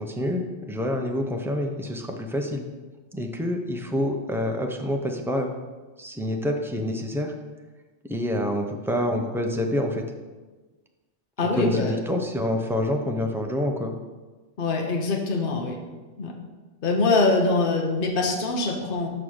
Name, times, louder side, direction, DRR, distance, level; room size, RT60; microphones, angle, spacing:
voice 1, 0.0-2.6 3.1-5.5 6.0-7.3 8.1-10.1 11.6-13.9, left 1 dB, 5° right, 3 dB, 0.3 m, -27 dB
voice 2, 11.4-12.0 14.6-15.8 16.2-16.3 16.8-19.1, left 3 dB, 50° left, 1 dB, 1.0 m, -23 dB
5.7 x 4.9 x 6.3 m, 1.3 s
omnidirectional pair, 1.2 m